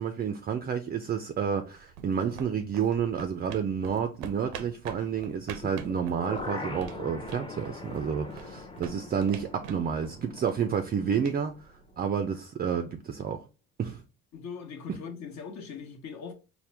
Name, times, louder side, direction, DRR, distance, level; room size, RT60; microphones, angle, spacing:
voice 1, 0.0-13.4 13.8-14.0 14.9-15.0, right 7 dB, 30° right, 0.4 m, -30 dB
sound 1, 1.6-12.3, right 7 dB, 90° right, 0.6 m, -47 dB
sound 2, 5.6-11.6 11.9-12.0, left 2 dB, 15° left, 0.7 m, -42 dB
voice 2, 14.3-16.3, left 6 dB, 55° left, 1.1 m, -40 dB
4.3 x 2.1 x 3.3 m
supercardioid pair, 90°, 34 cm